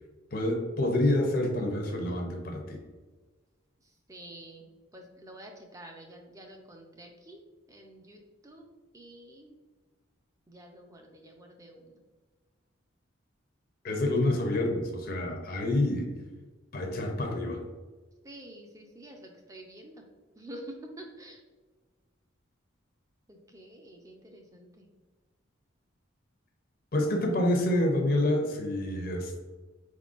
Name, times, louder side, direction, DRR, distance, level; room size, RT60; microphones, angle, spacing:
voice 1, 0.3-2.8 13.8-16.1 16.7-17.6 26.9-29.4, left 1 dB, 45° left, 2 dB, 0.5 m, -27 dB
voice 2, 3.8-4.7 4.9-7.4 7.7-8.7 8.9-9.6 10.5-12.0 18.2-20.1 20.3-21.4 23.3-24.9, right 1 dB, 15° right, 2 dB, 0.4 m, -48 dB
4.4 x 3.7 x 2.4 m, 1.3 s
head